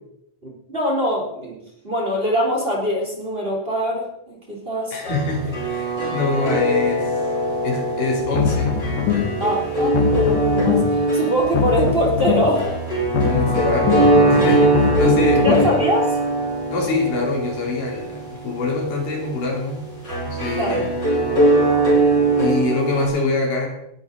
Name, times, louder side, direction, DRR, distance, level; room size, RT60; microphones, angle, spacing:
voice 1, 0.4-1.6 1.8-5.0 9.4-12.7 15.4-16.1 20.5-20.9, equal, 15° right, -2 dB, 3.5 m, -23 dB
voice 2, 4.9-7.2 7.6-8.7 13.2-14.0 14.3-15.7 16.7-19.8 20.2-20.8 22.3-23.7, left 3 dB, 85° left, 0 dB, 4.8 m, -24 dB
sound 1, 5.0-23.1, right 2 dB, 30° left, 5.7 m, -21 dB
sound 2, 8.2-9.5 9.8-11.1 11.4-12.7 13.0-15.8, left 8 dB, 65° left, 1.8 m, -23 dB
18.5 x 12.0 x 4.0 m, 0.81 s
omnidirectional pair, 3.6 m